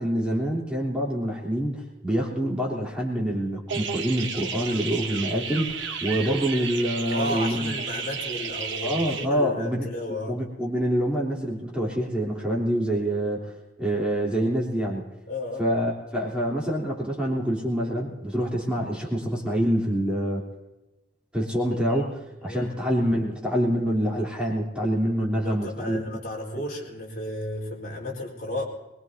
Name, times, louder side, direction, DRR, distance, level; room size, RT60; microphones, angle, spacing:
voice 1, 0.0-7.7 8.8-15.1 15.6-20.5 21.3-26.1, equal, 5° right, -4 dB, 3.2 m, -26 dB
sound 1, 3.7-9.3, right 6 dB, 75° right, 1.3 m, -33 dB
voice 2, 7.1-10.4 15.3-15.7 21.9-22.9 25.4-28.6, left 1 dB, 50° left, -3 dB, 4.2 m, -34 dB
23.0 x 22.0 x 2.8 m, 1.0 s
head